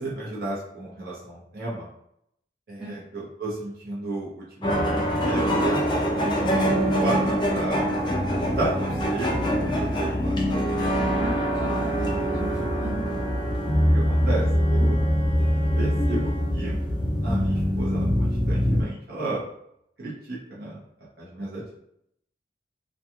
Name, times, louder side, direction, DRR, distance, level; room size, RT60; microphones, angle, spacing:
voice 1, 0.0-1.9 2.7-7.9 8.5-10.9 12.0-12.5 13.9-15.0 15.7-16.8 17.2-19.4 20.0-20.8 21.2-21.8, right 2 dB, 55° right, -7 dB, 0.8 m, -33 dB
sound 1, 4.6-18.8, equal, 25° left, 0.4 m, -24 dB
voice 2, 11.2-13.0, right 1 dB, 5° right, -9 dB, 0.9 m, -36 dB
Wind instrument woodwind instrument, 11.7-16.5, left 1 dB, 65° left, 0.9 m, -43 dB
2.8 x 2.3 x 2.4 m, 0.74 s
head